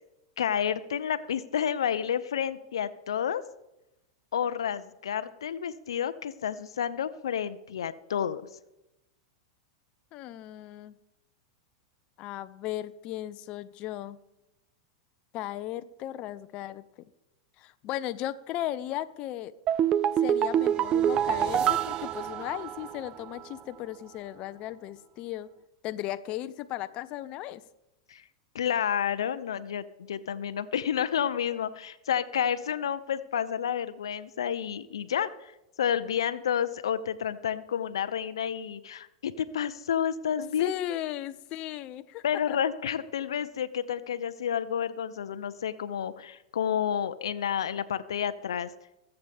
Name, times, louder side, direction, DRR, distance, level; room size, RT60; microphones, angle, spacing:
voice 1, 0.4-3.4 4.3-8.4 28.1-28.2 28.5-35.5 35.8-40.7 42.2-48.7, left 8 dB, 85° left, 12 dB, 0.7 m, -30 dB
voice 2, 10.1-10.9 12.2-14.2 15.3-16.8 17.6-19.5 20.2-25.5 25.8-27.6 40.6-42.6, left 13 dB, 45° left, 11 dB, 0.7 m, -36 dB
sound 1, 19.7-23.1 23.4-23.5, right 10 dB, 35° right, 0.5 m, -26 dB
21.5 x 8.0 x 3.5 m, 0.91 s
hypercardioid pair, 110°, 3 cm